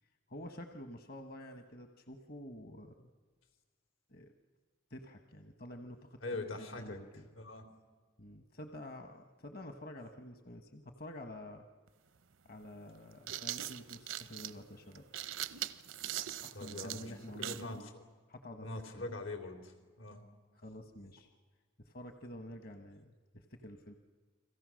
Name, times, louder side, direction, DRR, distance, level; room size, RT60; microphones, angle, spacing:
voice 1, 0.0-3.1 4.1-4.3 4.9-7.3 8.2-11.7 12.4-15.1 16.4-17.9 18.3-18.7 18.9-19.1 20.5-21.3 21.8-23.9, left 1 dB, 50° left, 6 dB, 1.2 m, -49 dB
voice 2, 6.2-7.0 7.3-7.6 16.6-18.0 18.6-20.2, left 2 dB, 85° left, 4 dB, 3.6 m, -43 dB
sound 1, 11.9-12.0 13.0-17.7, right 12 dB, 80° right, 0.8 m, -41 dB
30.0 x 22.5 x 6.4 m, 1.4 s
head